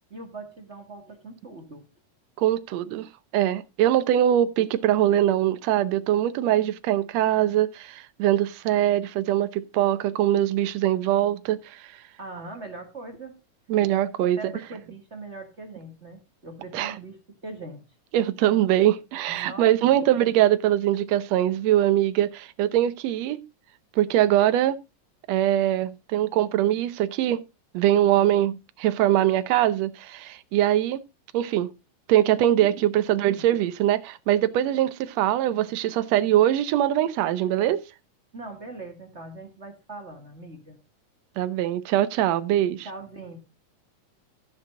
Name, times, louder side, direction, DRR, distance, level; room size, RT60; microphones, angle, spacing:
voice 1, 0.1-1.8 12.2-13.4 14.2-17.8 19.3-20.1 32.6-32.7 33.3-33.4 38.3-40.8 42.8-43.4, right 2 dB, 30° right, 1.4 m, -41 dB
voice 2, 2.4-3.1 3.3-11.9 13.7-14.4 16.7-16.9 18.1-23.4 24.0-24.8 25.3-27.4 27.7-31.0 31.3-31.7 32.1-37.8 41.4-42.9, right 12 dB, 70° right, 1.7 m, -22 dB
15.5 x 6.6 x 3.8 m
omnidirectional pair, 3.7 m